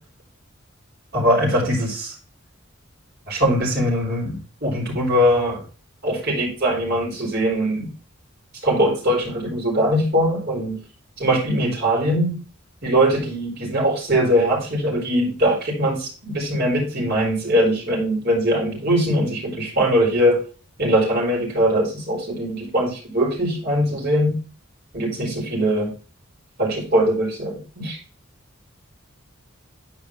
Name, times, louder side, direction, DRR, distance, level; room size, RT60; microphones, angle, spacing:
voice 1, 1.1-2.1 3.3-5.6 6.0-7.9 8.6-10.8 11.2-12.4 12.8-20.4 20.8-24.4 24.9-25.9 26.6-28.0, equal, 50° right, -3 dB, 4.3 m, -21 dB
10.0 x 4.9 x 3.5 m, 0.36 s
head